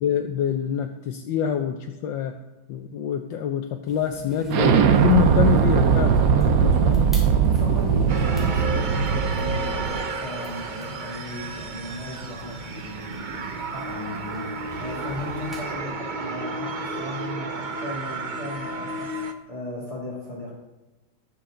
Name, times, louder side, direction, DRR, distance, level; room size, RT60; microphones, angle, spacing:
voice 1, 0.0-2.4 2.7-7.0, left 9 dB, 75° left, 5 dB, 1.4 m, -26 dB
sound 1, 3.9-15.8, equal, ahead, 3.8 m, -44 dB
Explosion, 4.5-10.0, right 7 dB, 60° right, 1.0 m, -20 dB
voice 2, 6.6-20.6, left 1 dB, 15° left, -5 dB, 2.4 m, -36 dB
sound 2, 8.1-19.3, right 3 dB, 75° right, 0.4 m, -32 dB
18.5 x 6.9 x 3.8 m, 1.1 s
omnidirectional pair, 2.1 m